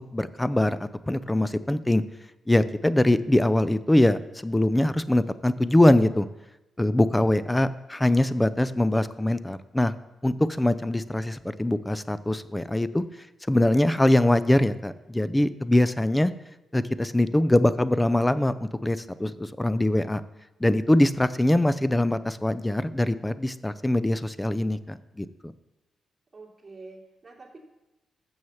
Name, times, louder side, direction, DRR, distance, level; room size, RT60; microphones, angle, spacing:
voice 1, 0.1-2.0 2.5-6.3 6.8-9.9 10.2-13.0 13.5-16.3 16.7-20.2 20.6-25.3, left 1 dB, 10° left, 15 dB, 0.5 m, -23 dB
voice 2, 26.3-27.6, right 3 dB, 30° right, -4 dB, 2.9 m, -46 dB
7.3 x 6.3 x 7.0 m, 0.99 s
cardioid pair, 70°, 0 cm